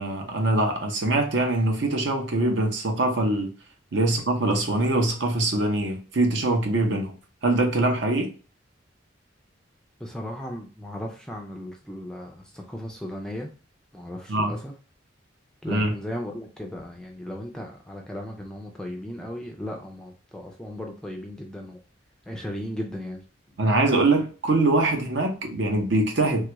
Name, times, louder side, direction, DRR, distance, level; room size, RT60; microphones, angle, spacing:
voice 1, 0.0-3.5 3.9-7.1 7.4-8.3 14.3-14.6 15.7-15.9 23.6-26.5, right 2 dB, 60° right, 0.7 m, -23 dB
voice 2, 10.0-13.5 13.9-14.7 15.6-21.8 22.3-23.2, equal, 5° left, 0.4 m, -36 dB
3.3 x 2.4 x 2.9 m
head